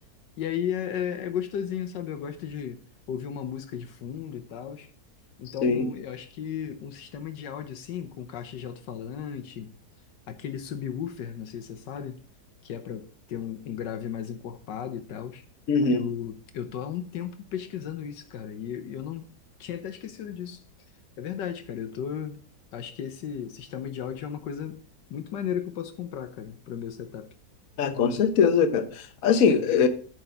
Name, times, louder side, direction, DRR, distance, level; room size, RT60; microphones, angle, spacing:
voice 1, 0.4-2.8 3.1-4.9 5.4-9.7 10.3-12.2 12.6-15.4 15.9-19.2 19.6-20.6 21.2-22.4 22.7-24.8 25.1-27.3, left 9 dB, 85° left, 1.5 m, -35 dB
voice 2, 5.5-5.9 15.7-16.1 27.8-29.9, left 6 dB, 55° left, 1.3 m, -22 dB
8.9 x 4.7 x 6.8 m
omnidirectional pair, 1.9 m